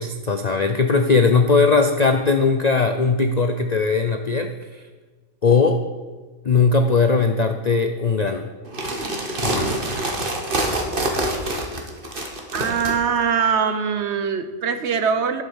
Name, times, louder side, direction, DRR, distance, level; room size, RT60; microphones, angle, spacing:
voice 1, 0.0-4.8 5.4-5.8 6.4-8.5 9.4-9.7, left 4 dB, 55° left, 7 dB, 0.4 m, -19 dB
sound 1, 8.7-12.9, right 1 dB, 40° right, 1.6 m, -25 dB
voice 2, 12.5-15.4, right 6 dB, 60° right, 10 dB, 0.9 m, -22 dB
10.5 x 8.0 x 7.1 m, 1.4 s
omnidirectional pair, 1.5 m